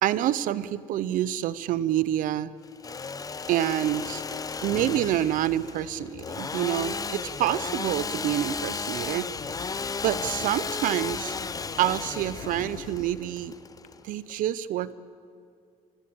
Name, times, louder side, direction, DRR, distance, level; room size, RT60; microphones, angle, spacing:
voice 1, 0.0-2.5 3.5-4.2 4.6-9.3 10.0-11.3 11.8-13.5 14.0-14.9, right 12 dB, 70° right, 17 dB, 0.8 m, -27 dB
sound 1, 2.2-2.3 3.3-13.9, left 7 dB, 55° left, 1.4 m, -45 dB
Engine / Sawing, 2.6-14.3, left 5 dB, 25° left, 0.8 m, -34 dB
24.0 x 19.5 x 8.8 m, 2.3 s
cardioid pair, 100°, 14 cm